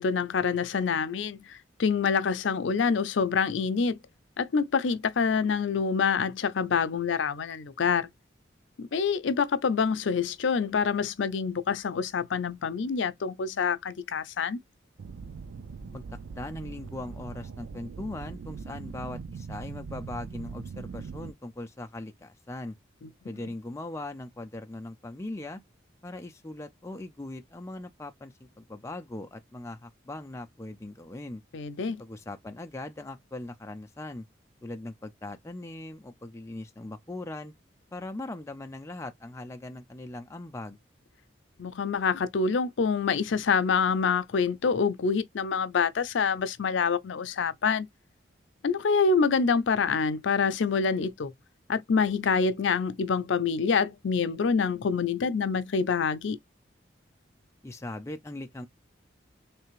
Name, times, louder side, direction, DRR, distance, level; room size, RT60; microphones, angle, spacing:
voice 1, 0.0-4.0 4.4-8.1 8.8-14.6 23.0-23.1 31.5-32.0 41.6-47.9 48.6-51.3 51.7-56.4, left 5 dB, 80° left, 0.5 m, -26 dB
sound 1, 15.0-21.3, right 5 dB, 90° right, 0.4 m, -41 dB
voice 2, 15.9-22.8 23.2-25.6 26.0-31.4 32.0-34.3 34.6-37.5 37.9-40.8 57.6-58.7, left 2 dB, 15° left, 0.4 m, -40 dB
3.4 x 3.2 x 3.0 m
head